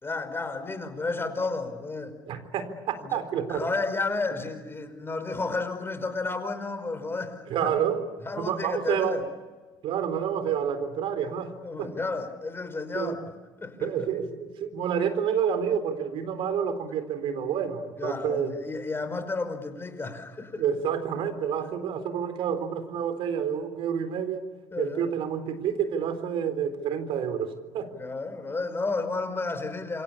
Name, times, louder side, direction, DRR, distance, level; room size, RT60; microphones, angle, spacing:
voice 1, 0.0-2.1 3.0-3.2 3.5-7.8 8.2-9.3 11.6-13.2 13.6-14.1 18.0-20.6 24.7-25.1 27.9-30.0, left 3 dB, 20° left, 9 dB, 5.2 m, -32 dB
voice 2, 2.3-3.7 7.5-8.1 8.4-9.2 9.8-11.9 12.9-13.2 13.8-18.5 20.6-24.5 24.8-27.9, right 8 dB, 60° right, 10 dB, 4.0 m, -29 dB
28.0 x 24.5 x 8.6 m, 1.3 s
hypercardioid pair, 60°, 10 cm